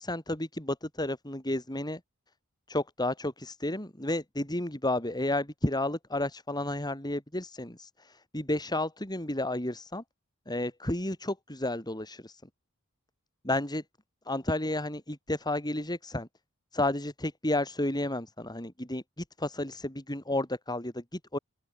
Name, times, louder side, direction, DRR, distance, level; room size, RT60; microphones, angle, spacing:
voice 1, 0.0-2.0 2.7-10.0 10.5-12.4 13.4-13.8 14.3-16.3 16.7-19.0 19.4-21.4, left 1 dB, 20° left, 6.0 m, -32 dB
open air
head